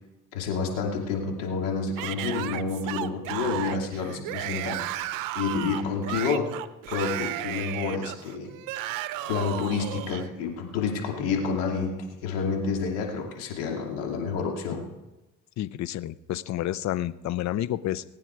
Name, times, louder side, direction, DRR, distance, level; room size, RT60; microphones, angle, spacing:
voice 1, 0.3-4.8 5.3-6.5 6.9-8.5 9.3-12.0 12.2-14.9, left 5 dB, 85° left, 1 dB, 2.7 m, -29 dB
Yell / Screaming, 2.0-10.3, right 15 dB, 75° right, 0.7 m, -34 dB
voice 2, 5.6-5.9 15.6-18.0, left 13 dB, 55° left, 17 dB, 0.6 m, -30 dB
19.5 x 9.1 x 4.7 m, 1.0 s
supercardioid pair, 85°, 33 cm